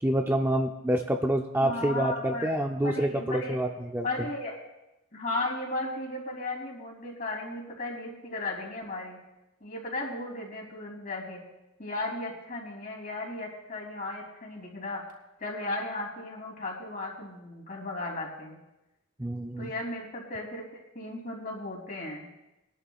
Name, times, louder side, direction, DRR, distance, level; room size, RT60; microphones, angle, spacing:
voice 1, 0.0-4.1 19.2-19.7, right 1 dB, 10° right, 3 dB, 0.5 m, -27 dB
voice 2, 1.6-2.5 2.8-3.6 4.0-4.6 5.1-9.2 9.6-11.4 11.8-15.0 15.4-18.6 19.6-22.3, left 2 dB, 40° left, -1 dB, 3.1 m, -35 dB
22.5 x 11.0 x 2.4 m, 0.95 s
head